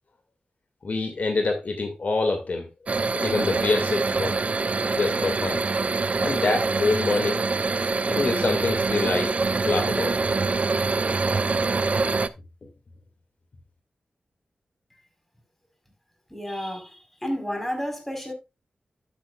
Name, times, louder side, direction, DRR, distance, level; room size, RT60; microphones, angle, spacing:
voice 1, 0.8-2.7 3.0-4.4 4.9-5.6 6.2-7.4 8.1-9.3 9.6-10.2, left 3 dB, 65° left, 2.4 m, -25 dB
sound 1, 2.9-12.3, right 3 dB, 50° right, 0.6 m, -25 dB
voice 2, 16.3-18.3, equal, 5° left, 4.8 m, -31 dB
12.0 x 7.8 x 2.4 m
cardioid pair, 55°, 3 cm